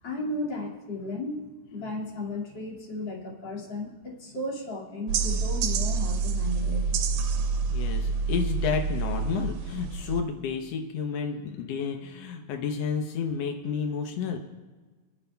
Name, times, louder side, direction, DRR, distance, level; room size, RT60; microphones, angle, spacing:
voice 1, 0.0-6.9, left 2 dB, 35° left, -3 dB, 2.6 m, -34 dB
sound 1, 5.1-10.2, right 5 dB, 75° right, 2.0 m, -27 dB
voice 2, 7.7-14.4, left 6 dB, 90° left, 4 dB, 1.4 m, -31 dB
29.0 x 11.0 x 2.3 m, 1.3 s
omnidirectional pair, 4.1 m